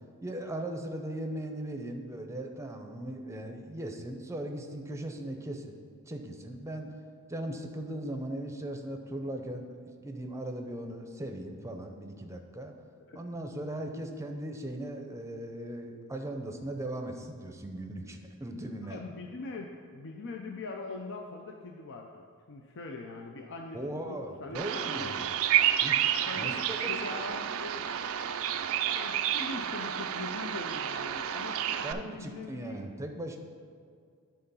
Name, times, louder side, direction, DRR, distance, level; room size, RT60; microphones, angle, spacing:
voice 1, 0.2-5.7 6.1-6.9 7.3-12.7 13.1-19.0 23.7-25.3 25.8-26.5 26.8-27.4 31.8-33.4, right 1 dB, 15° right, 4 dB, 0.6 m, -38 dB
voice 2, 18.8-25.3 26.2-26.6 26.9-27.9 28.9-32.9, left 3 dB, 55° left, 2 dB, 0.5 m, -42 dB
Bird vocalization bird call bird song, 24.5-31.9, right 10 dB, 70° right, 0.4 m, -30 dB
10.0 x 3.8 x 5.5 m, 2.2 s
head